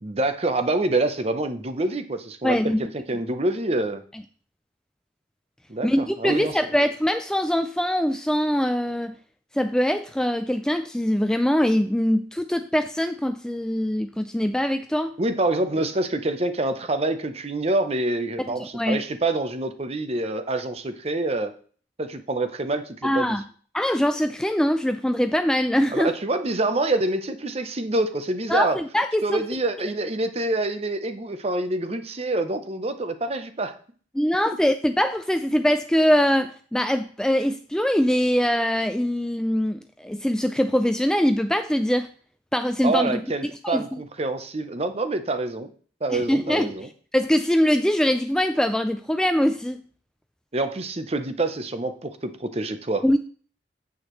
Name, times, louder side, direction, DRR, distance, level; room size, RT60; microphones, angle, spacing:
voice 1, 0.0-4.0 5.7-6.6 15.2-21.5 22.0-23.4 25.9-28.8 29.2-33.7 42.8-45.7 46.0-46.9 50.5-53.0, right 2 dB, 35° right, 9 dB, 0.8 m, -26 dB
voice 2, 2.4-2.9 5.8-9.1 9.5-15.1 18.4-19.0 23.0-23.4 23.7-26.1 28.5-29.4 34.1-42.1 42.5-43.2 43.6-44.0 46.1-46.8 47.1-49.8 53.0-53.2, equal, 5° left, 8 dB, 0.3 m, -23 dB
9.4 x 8.1 x 3.1 m, 0.44 s
head